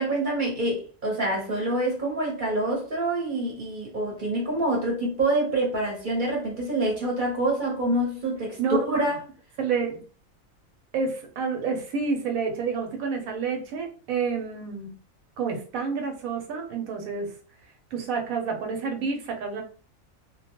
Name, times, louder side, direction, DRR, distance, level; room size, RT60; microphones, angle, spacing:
voice 1, 0.0-9.2, right 1 dB, 40° right, 1.0 m, -26 dB
voice 2, 8.6-9.0 9.6-10.0 10.9-14.9 15.4-17.3 17.9-19.6, right 5 dB, 80° right, 1.1 m, -29 dB
2.5 x 2.2 x 2.9 m
omnidirectional pair, 1.5 m